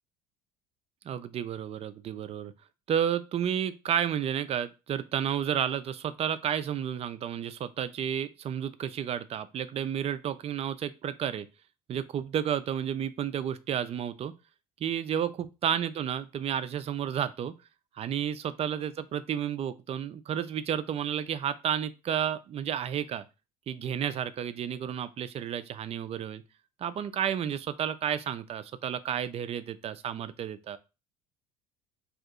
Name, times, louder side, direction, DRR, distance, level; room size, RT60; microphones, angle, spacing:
voice 1, 1.1-2.5 2.9-11.5 11.9-14.3 14.8-15.3 15.6-17.5 18.0-23.2 23.7-26.4 26.8-30.8, right 9 dB, 30° right, 13 dB, 0.3 m, -31 dB
2.6 x 2.4 x 3.5 m, 0.29 s
figure-of-eight pair, 60°, 20 cm